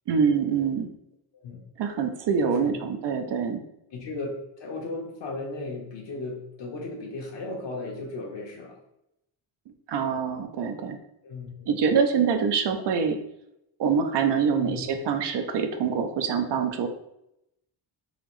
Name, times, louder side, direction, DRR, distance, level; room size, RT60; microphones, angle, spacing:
voice 1, 0.1-0.9 1.8-3.6 9.9-11.0 11.7-13.2 13.8-16.9, right 6 dB, 60° right, 6 dB, 0.6 m, -25 dB
voice 2, 3.9-4.3 4.6-8.7 11.2-11.7 14.5-14.8, left 2 dB, 60° left, -1 dB, 1.2 m, -36 dB
4.0 x 3.0 x 3.1 m, 0.82 s
cardioid pair, 120°, 49 cm